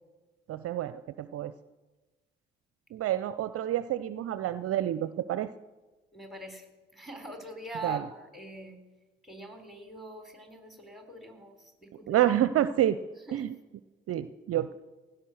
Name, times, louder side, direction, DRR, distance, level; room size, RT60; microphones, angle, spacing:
voice 1, 0.5-1.5 2.9-5.5 7.8-8.0 12.1-13.0 13.3-13.5 14.1-14.7, right 12 dB, 50° right, 14 dB, 0.6 m, -28 dB
voice 2, 6.1-6.7 6.9-8.8 9.2-12.2 13.3-13.4, right 2 dB, ahead, 5 dB, 3.6 m, -43 dB
16.5 x 11.0 x 6.4 m, 1.2 s
hypercardioid pair, 45°, 30 cm